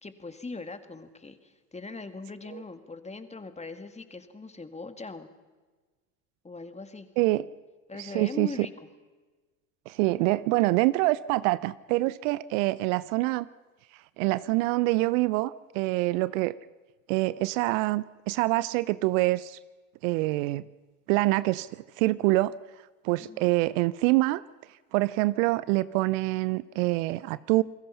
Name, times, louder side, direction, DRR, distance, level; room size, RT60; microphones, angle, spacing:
voice 1, 0.0-5.3 6.4-7.1 7.9-8.7 23.2-23.5, left 3 dB, 15° left, 9 dB, 2.3 m, -40 dB
voice 2, 8.0-8.5 9.9-13.5 14.2-16.5 17.1-19.6 20.0-20.7 21.1-22.5 23.0-24.4 24.9-27.6, right 20 dB, 65° right, 19 dB, 0.7 m, -25 dB
29.0 x 21.0 x 5.7 m, 1.3 s
hypercardioid pair, 65°, 42 cm